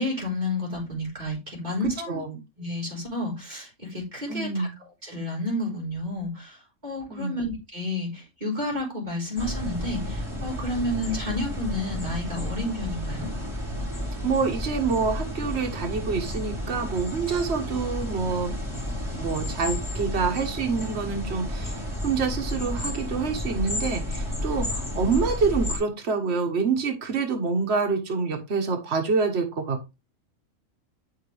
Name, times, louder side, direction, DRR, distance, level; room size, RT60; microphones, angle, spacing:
voice 1, 0.0-2.2 2.6-4.7 5.0-6.6 6.8-13.3, left 1 dB, 35° right, 4.7 m, -30 dB
voice 2, 1.8-2.4 4.3-4.7 7.1-7.4 14.2-18.5 19.1-29.9, right 5 dB, 55° right, 1.6 m, -27 dB
sound 1, 9.4-25.8, left 1 dB, 20° left, 3.3 m, -32 dB
8.1 x 6.5 x 3.4 m
omnidirectional pair, 1.4 m